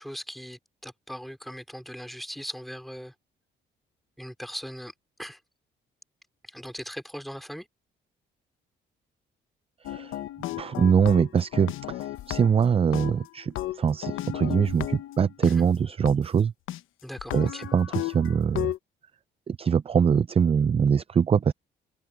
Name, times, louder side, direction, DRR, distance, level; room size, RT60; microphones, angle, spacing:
voice 1, 0.0-3.1 4.2-4.9 5.2-5.4 6.4-7.7 15.4-15.7 17.0-17.6, equal, ahead, 4.5 m, -39 dB
Funk Lead Loop, 9.8-12.6 12.9-15.5 16.0-16.1 16.7-16.8 17.2-18.8, left 14 dB, 85° left, 1.0 m, -34 dB
voice 2, 9.8-10.2 10.6-16.5 17.3-18.7 19.5-21.5, right 7 dB, 30° right, 0.4 m, -23 dB
open air
cardioid pair, 90°, 20 cm